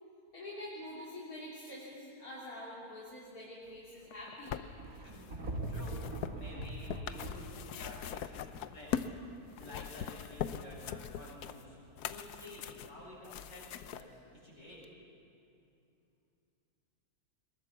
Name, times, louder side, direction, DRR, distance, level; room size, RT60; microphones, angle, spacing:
voice 1, 0.3-4.6, left 1 dB, 70° left, -7 dB, 3.5 m, -46 dB
sound 1, 4.0-9.2 9.5-14.0 14.8-14.9, left 9 dB, 90° left, 1.3 m, -41 dB
sound 2, 4.8-7.6 9.1-9.2, right 1 dB, 70° right, 2.6 m, -41 dB
voice 2, 5.0-9.0 9.4-14.9, left 1 dB, 50° left, -4 dB, 6.9 m, -51 dB
22.5 x 21.0 x 7.1 m, 2.7 s
omnidirectional pair, 1.6 m